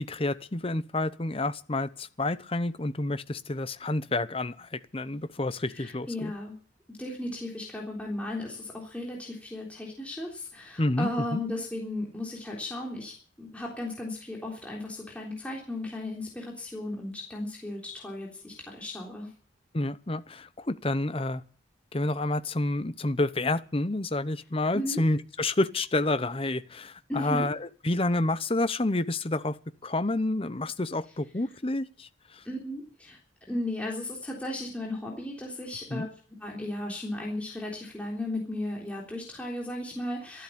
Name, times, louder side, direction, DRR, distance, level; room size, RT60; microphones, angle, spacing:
voice 1, 0.0-6.3 10.8-11.4 19.7-21.4 21.9-29.6 29.8-32.4 35.9-36.1, left 2 dB, 30° left, 13 dB, 0.9 m, -29 dB
voice 2, 5.7-6.5 7.0-19.3 24.7-25.0 27.1-27.5 32.5-33.2 33.5-36.1 36.4-40.4, left 1 dB, 5° left, -2 dB, 3.6 m, -35 dB
13.5 x 12.0 x 8.6 m, 0.43 s
head